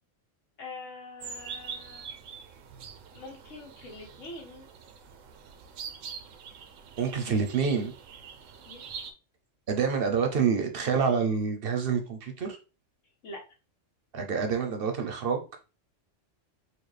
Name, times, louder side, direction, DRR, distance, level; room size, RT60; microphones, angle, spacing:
voice 1, 0.6-2.1 3.1-4.7 8.7-8.8 13.2-13.4, left 2 dB, 75° left, 1.6 m, -44 dB
sound 1, 1.2-9.1, right 6 dB, 85° right, 1.0 m, -44 dB
voice 2, 7.0-7.9 9.7-12.6 14.1-15.5, right 6 dB, 55° right, 0.8 m, -27 dB
4.2 x 2.3 x 3.2 m
omnidirectional pair, 1.3 m